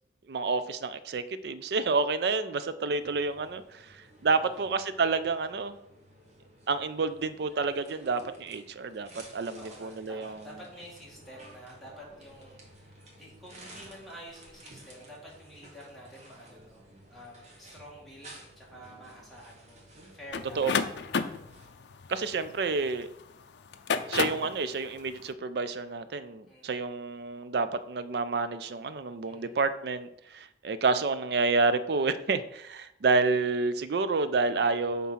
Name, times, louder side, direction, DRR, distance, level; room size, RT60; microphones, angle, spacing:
voice 1, 0.3-3.9 4.2-5.8 6.7-10.4 20.6-20.7 22.1-23.1 24.1-35.1, right 4 dB, 60° right, 12 dB, 0.4 m, -29 dB
sound 1, 3.0-21.7, right 1 dB, 40° right, 1.3 m, -53 dB
voice 2, 4.2-4.6 9.6-19.9 20.1-21.1 26.4-26.8 29.2-29.6, equal, ahead, -5 dB, 1.8 m, -49 dB
sound 2, 20.3-23.0 23.7-24.6, left 5 dB, 70° left, 0.4 m, -31 dB
5.7 x 3.6 x 5.5 m, 0.79 s
head